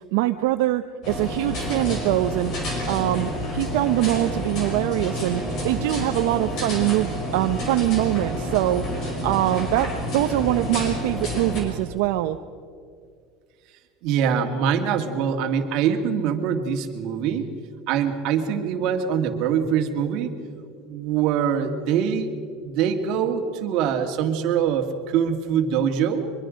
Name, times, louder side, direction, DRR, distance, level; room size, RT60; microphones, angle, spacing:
voice 1, 0.1-2.5 2.9-12.4, right 15 dB, 75° right, 7 dB, 0.7 m, -23 dB
sound 1, 1.0-11.6, equal, 45° left, 5.4 m, -29 dB
voice 2, 14.0-17.5 17.9-20.3 20.9-22.4 22.6-26.3, right 8 dB, 55° right, 5 dB, 2.0 m, -23 dB
23.5 x 22.5 x 5.2 m, 2.2 s
cardioid pair, 160°, 0 cm